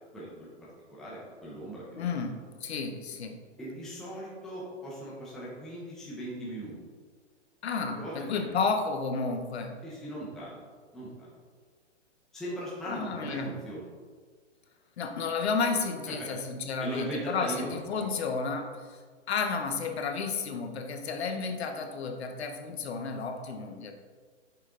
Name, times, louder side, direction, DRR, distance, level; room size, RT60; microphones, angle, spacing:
voice 1, 0.1-2.4 3.6-6.8 7.9-8.5 9.8-10.6 10.9-11.3 12.3-13.9 16.1-16.4 16.8-18.1, right 1 dB, ahead, -7 dB, 0.7 m, -39 dB
voice 2, 2.0-3.4 7.6-9.8 12.9-13.5 15.0-19.0 19.3-23.9, left 4 dB, 60° left, 5 dB, 1.0 m, -32 dB
6.9 x 5.9 x 3.7 m, 1.5 s
hypercardioid pair, 160°, 36 cm